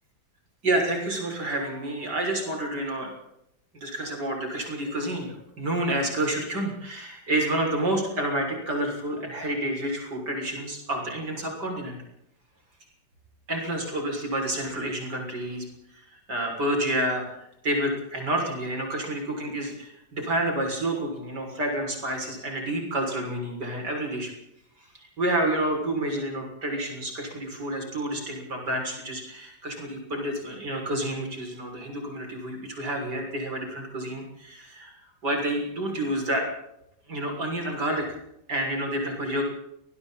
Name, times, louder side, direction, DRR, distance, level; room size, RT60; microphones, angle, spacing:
voice 1, 0.6-3.1 3.7-12.0 13.5-17.2 17.6-24.3 24.8-36.4 37.1-38.2 38.5-39.4, right 1 dB, 65° right, 2 dB, 7.4 m, -29 dB
29.5 x 22.0 x 4.4 m, 0.79 s
omnidirectional pair, 2.0 m